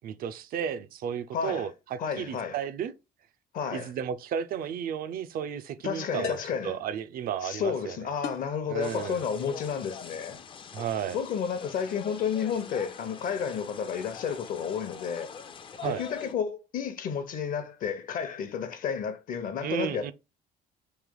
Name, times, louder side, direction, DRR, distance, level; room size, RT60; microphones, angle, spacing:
voice 1, 0.0-2.9 3.7-6.4 6.6-8.1 8.7-9.2 10.7-11.2 15.8-16.0 19.6-20.1, right 8 dB, 60° right, 0.4 m, -33 dB
voice 2, 1.3-1.7 2.0-2.5 3.5-3.9 5.8-6.7 7.4-10.4 11.1-15.3 15.8-20.1, left 7 dB, 55° left, 0.7 m, -31 dB
sound 1, 4.6-4.8 6.2-6.7 8.2-8.6, left 7 dB, 85° left, 0.9 m, -38 dB
sound 2, 8.8-16.3, left 6 dB, 30° left, 0.4 m, -44 dB
3.2 x 2.8 x 3.8 m
cardioid pair, 110°, 17 cm